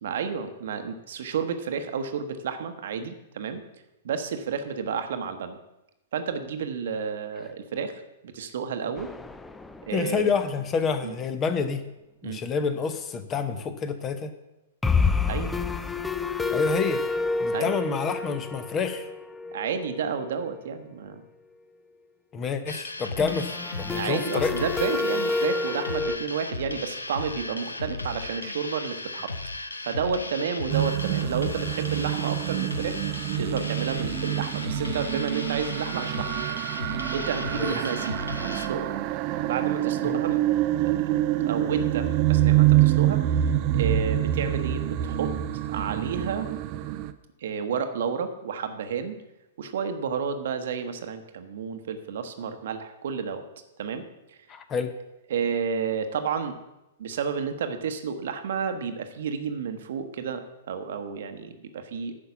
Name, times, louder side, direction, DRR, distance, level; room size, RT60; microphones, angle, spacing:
voice 1, 0.0-3.6 4.0-5.6 6.1-7.9 8.2-9.1 9.9-10.3 11.0-11.1 12.2-12.4 15.2-15.5 17.5-17.7 19.5-21.2 23.9-29.3 29.8-33.0 33.4-36.3 36.6-38.9 39.4-40.4 40.8-41.1 41.5-43.5 43.7-45.3 45.7-46.5 47.4-49.2 49.6-53.4 53.8-54.1 55.3-56.5 57.0-62.2, right 6 dB, 60° right, 8 dB, 1.0 m, -31 dB
sound 1, 9.0-10.2 10.5-10.6 10.9-11.0 14.8-20.5 23.2-26.2, left 4 dB, 10° left, 0.5 m, -29 dB
voice 2, 9.9-11.8 12.2-14.3 16.5-17.0 17.4-19.1 22.3-24.6 37.5-37.8 40.0-40.2 54.5-54.9, left 5 dB, 25° left, 10 dB, 0.9 m, -28 dB
sound 2, 22.7-38.7, left 2 dB, 85° left, 0.8 m, -36 dB
sound 3, 30.7-47.1, right 14 dB, 40° right, 0.6 m, -26 dB
9.8 x 5.8 x 7.0 m, 0.94 s
figure-of-eight pair, 110°, 0 cm